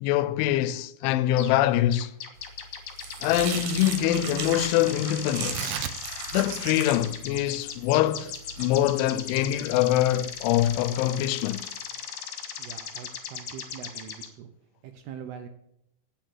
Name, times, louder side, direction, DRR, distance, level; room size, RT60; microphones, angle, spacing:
voice 1, 0.0-2.1 3.2-5.8 6.3-8.3 8.6-11.7, left 12 dB, 85° left, 3.1 m, -24 dB
sound 1, 1.4-1.6 1.9-14.3, left 8 dB, 60° left, 2.5 m, -38 dB
sound 2, 2.5-10.7, right 5 dB, 60° right, 2.9 m, -38 dB
Tearing, 5.4-12.1, right 13 dB, 90° right, 2.2 m, -42 dB
voice 2, 12.6-14.5 14.8-15.5, right 8 dB, 75° right, 2.5 m, -42 dB
9.3 x 8.9 x 7.7 m
omnidirectional pair, 5.4 m